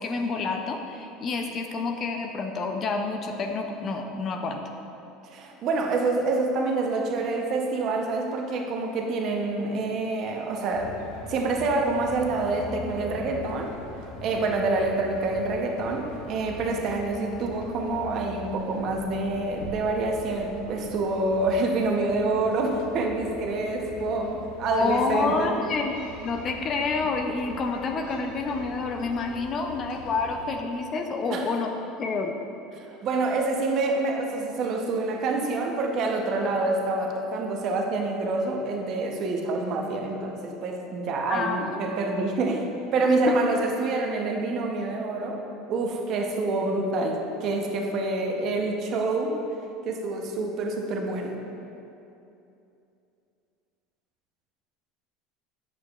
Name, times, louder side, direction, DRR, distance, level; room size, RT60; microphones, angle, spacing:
voice 1, 0.0-4.6 24.7-25.9 26.2-31.7 32.0-32.3 41.3-41.8 43.0-43.4, left 4 dB, 30° left, 4 dB, 0.4 m, -28 dB
voice 2, 5.2-11.0 11.3-13.7 14.2-25.5 31.3-31.5 32.8-45.4 45.7-49.3 49.9-51.4, right 3 dB, 40° right, 2 dB, 0.7 m, -27 dB
sound 1, 10.7-30.6, left 3 dB, 85° left, 0.7 m, -43 dB
7.6 x 6.6 x 2.3 m, 2.8 s
cardioid pair, 155°, 0 cm